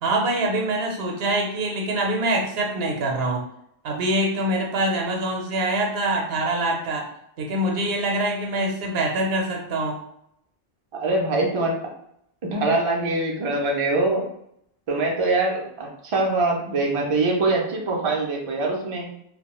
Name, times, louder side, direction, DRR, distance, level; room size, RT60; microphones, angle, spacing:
voice 1, 0.0-3.5 3.8-7.1 7.4-10.0, right 1 dB, 70° right, 0 dB, 0.8 m, -24 dB
voice 2, 10.9-11.7 12.5-14.3 14.9-19.1, right 2 dB, 45° right, -1 dB, 0.4 m, -23 dB
2.2 x 2.1 x 2.9 m, 0.74 s
omnidirectional pair, 1.0 m